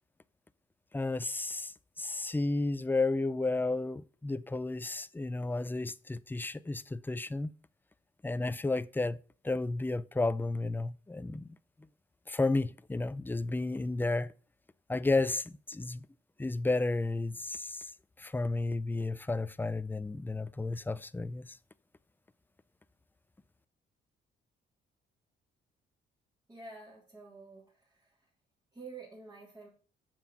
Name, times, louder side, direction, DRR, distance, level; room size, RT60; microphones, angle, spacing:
voice 1, 0.9-1.7 2.0-7.5 8.2-9.2 9.4-11.6 12.3-14.3 14.9-16.1 16.4-17.9 18.2-21.6, left 2 dB, 10° left, 0.5 m, -32 dB
voice 2, 26.5-28.3 28.7-29.7, right 3 dB, 20° right, 3.4 m, -49 dB
7.1 x 6.0 x 7.1 m
cardioid pair, 90°, 20 cm